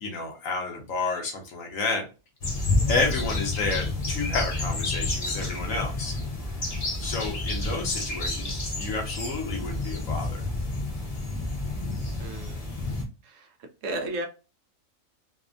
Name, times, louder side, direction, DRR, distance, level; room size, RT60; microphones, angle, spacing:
voice 1, 0.0-2.1 2.9-6.2 7.0-10.5, left 3 dB, 70° left, 1.3 m, -30 dB
sound 1, 2.4-13.0, left 2 dB, 35° left, 0.7 m, -30 dB
voice 2, 12.2-12.6 13.2-13.5 13.8-14.3, right 1 dB, 70° right, 0.9 m, -33 dB
3.4 x 2.1 x 2.4 m
omnidirectional pair, 1.4 m